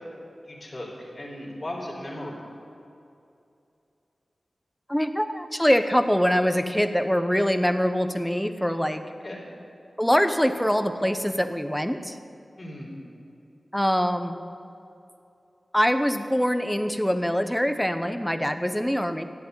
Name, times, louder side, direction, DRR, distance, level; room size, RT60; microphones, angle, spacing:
voice 1, 0.4-2.4 9.2-9.4 12.6-13.0, left 1 dB, 40° left, -3 dB, 3.7 m, -37 dB
voice 2, 4.9-9.0 10.0-12.2 13.7-14.4 15.7-19.2, equal, 5° left, 9 dB, 1.0 m, -24 dB
12.0 x 8.5 x 8.2 m, 2.6 s
cardioid pair, 40°, 0 cm